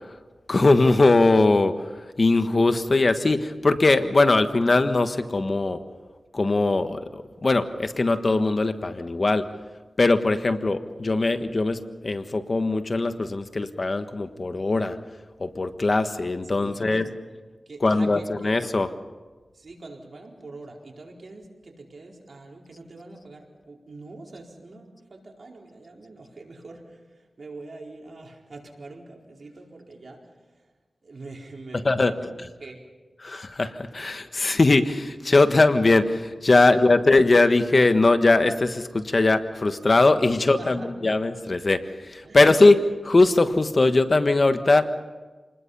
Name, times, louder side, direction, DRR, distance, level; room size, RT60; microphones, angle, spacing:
voice 1, 0.5-1.8 2.2-5.8 6.3-9.4 10.0-15.0 15.4-17.1 17.8-18.9 31.8-32.3 33.2-44.9, left 2 dB, 50° left, 9 dB, 1.4 m, -20 dB
voice 2, 16.6-18.5 19.5-30.7 31.0-32.3 32.6-32.8 36.5-36.9 40.6-40.9 42.2-42.5, right 2 dB, 70° right, 0 dB, 4.4 m, -44 dB
28.0 x 20.5 x 5.6 m, 1.3 s
cardioid pair, 50°, 0 cm